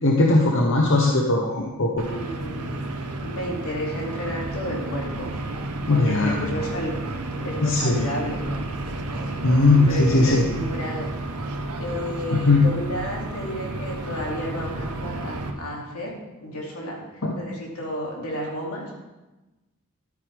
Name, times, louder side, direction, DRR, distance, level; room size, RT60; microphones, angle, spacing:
voice 1, 0.0-2.0 5.9-6.4 7.6-8.1 9.4-10.4 12.3-12.6 17.2-17.3, left 2 dB, 55° left, 0 dB, 1.0 m, -19 dB
voice 2, 2.0-2.8 3.2-5.3 5.9-8.4 9.7-11.1 11.8-16.1 16.4-17.0 17.4-18.9, equal, 80° left, -2 dB, 2.6 m, -32 dB
sound 1, 2.0-15.5, right 2 dB, 90° right, 1.0 m, -31 dB
13.0 x 8.7 x 3.5 m, 1.1 s
head